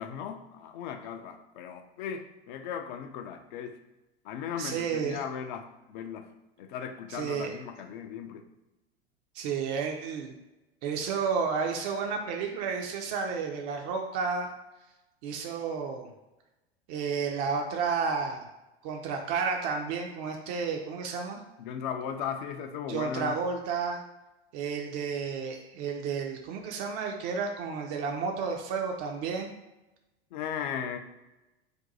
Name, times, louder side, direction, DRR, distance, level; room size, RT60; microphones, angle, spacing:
voice 1, 0.0-3.8 4.2-6.3 6.6-8.4 21.6-23.4 30.3-31.0, left 8 dB, 45° left, 6 dB, 0.4 m, -37 dB
voice 2, 4.6-5.2 7.1-7.5 9.3-10.3 10.8-14.5 15.2-16.1 16.9-18.4 18.8-21.4 22.9-24.0 24.5-29.5, right 5 dB, 40° right, 2 dB, 0.4 m, -31 dB
2.6 x 2.2 x 4.0 m, 1.0 s
figure-of-eight pair, 85°, 33 cm